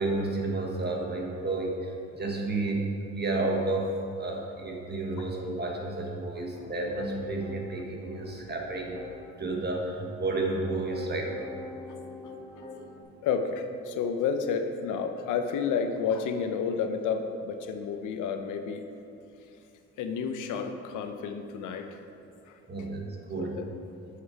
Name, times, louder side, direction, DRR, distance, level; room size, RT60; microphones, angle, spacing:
voice 1, 0.0-9.0 9.4-11.5 22.7-23.6, right 2 dB, 35° right, 0 dB, 1.5 m, -31 dB
Piano, 6.6-7.6 8.0-9.1 9.8-13.0, left 3 dB, 15° left, 1.5 m, -44 dB
voice 2, 12.5-18.9 20.0-22.0 22.5-22.6 23.4-23.7, left 6 dB, 85° left, 7 dB, 0.7 m, -31 dB
7.7 x 6.4 x 4.6 m, 2.7 s
cardioid pair, 90°, 30 cm